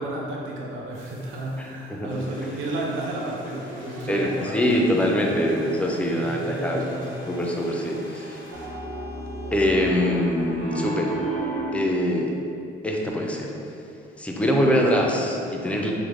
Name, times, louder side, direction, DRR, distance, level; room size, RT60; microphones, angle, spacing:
voice 1, 0.0-5.5 6.2-7.2, right 1 dB, 80° right, -3 dB, 0.5 m, -32 dB
sound 1, 0.9-9.6, left 1 dB, 15° right, 0.9 m, -45 dB
voice 2, 1.6-2.3 4.1-6.9 7.3-8.4 9.5-11.1 11.7-12.3 12.8-13.5 14.2-15.9, equal, 5° left, -1 dB, 0.4 m, -24 dB
sound 2, 2.1-8.7, equal, 45° right, 1.1 m, -47 dB
Piano, 8.5-11.9, right 2 dB, 65° right, 0.9 m, -31 dB
3.5 x 2.1 x 3.1 m, 2.6 s
cardioid pair, 90°, 20 cm